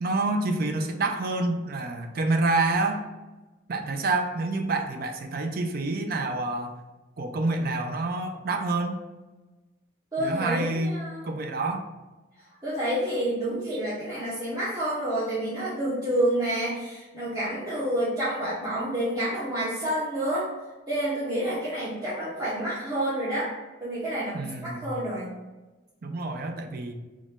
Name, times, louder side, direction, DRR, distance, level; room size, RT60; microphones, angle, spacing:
voice 1, 0.0-3.1 3.7-6.8 7.2-9.0 10.2-11.0 11.2-11.9 13.7-13.9 24.3-25.0 26.0-26.9, right 2 dB, 55° right, 5 dB, 0.5 m, -28 dB
voice 2, 10.1-11.2 12.4-20.5 20.9-23.5 23.8-25.3, right 1 dB, 20° right, -11 dB, 1.1 m, -29 dB
4.1 x 3.0 x 3.7 m, 1.1 s
head